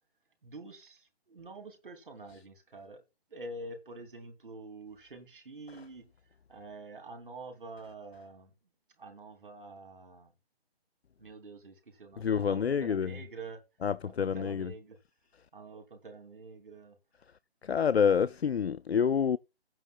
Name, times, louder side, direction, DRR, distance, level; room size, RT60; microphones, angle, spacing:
voice 1, 0.4-3.0 3.3-6.1 6.5-8.5 9.0-10.3 11.2-13.6 14.0-15.0 15.5-17.0, right 2 dB, 55° right, 2.8 m, -47 dB
voice 2, 12.2-13.2 13.8-14.7 17.6-19.4, left 7 dB, 75° left, 0.5 m, -27 dB
15.0 x 9.3 x 2.3 m
figure-of-eight pair, 145°, 32 cm